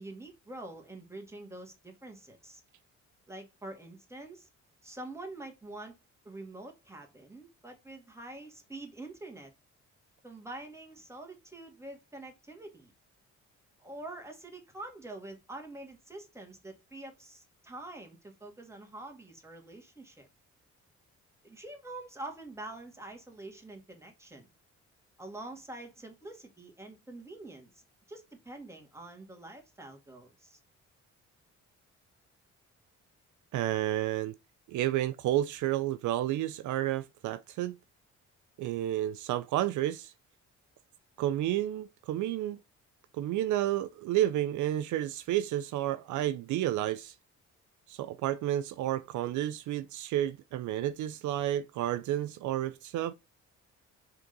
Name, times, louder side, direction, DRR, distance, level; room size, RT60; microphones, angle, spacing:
voice 1, 0.0-2.6 3.3-4.5 4.8-6.0 6.2-9.5 10.2-12.9 13.8-20.3 21.4-24.5 25.2-27.8 28.1-30.6, right 2 dB, 10° right, 2.1 m, -46 dB
voice 2, 33.5-34.3 34.7-37.8 38.6-40.1 41.2-42.6 43.1-47.1 47.9-53.1, right 13 dB, 75° right, 0.5 m, -31 dB
5.0 x 3.8 x 5.3 m
cardioid pair, 90°, 30 cm